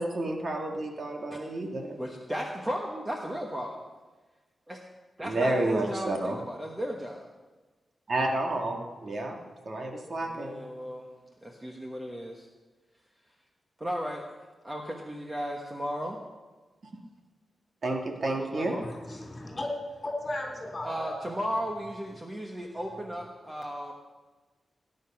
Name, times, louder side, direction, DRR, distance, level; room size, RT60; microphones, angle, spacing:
voice 1, 0.0-2.0 5.2-6.4 8.1-9.4 9.7-10.6 17.8-18.8, right 2 dB, 45° right, 2 dB, 1.8 m, -30 dB
voice 2, 2.0-3.8 4.7-4.8 5.2-7.3 10.2-11.1 11.4-12.5 13.8-14.3 14.6-16.2 18.2-18.9 20.8-23.9, equal, 15° right, 1 dB, 1.3 m, -35 dB
voice 3, 18.7-21.2, left 1 dB, 25° left, 0 dB, 3.6 m, -35 dB
18.0 x 9.7 x 5.9 m, 1.3 s
wide cardioid pair, 140°, 0 cm